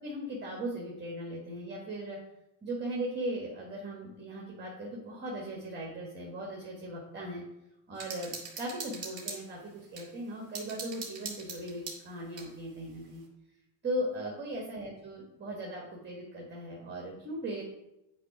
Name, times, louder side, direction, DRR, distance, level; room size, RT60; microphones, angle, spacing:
voice 1, 0.0-2.2 2.6-7.4 7.9-13.2 13.8-17.6, right 1 dB, 20° right, -1 dB, 1.3 m, -38 dB
sound 1, 8.0-10.1 10.5-12.5, right 4 dB, 40° right, 2.7 m, -41 dB
9.4 x 3.3 x 5.8 m, 0.90 s
cardioid pair, 155°, 47 cm